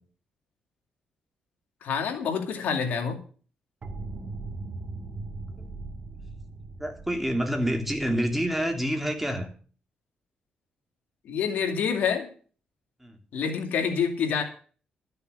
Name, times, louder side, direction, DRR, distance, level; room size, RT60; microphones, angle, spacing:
voice 1, 1.8-3.2 11.2-12.3 13.3-14.4, left 6 dB, 80° left, 5 dB, 2.5 m, -27 dB
sound 1, 3.8-9.5, right 3 dB, 50° right, 2.0 m, -40 dB
voice 2, 6.8-9.5 13.0-13.2, equal, 5° right, 4 dB, 2.9 m, -28 dB
13.0 x 6.8 x 7.8 m, 0.42 s
cardioid pair, 80°, 3 cm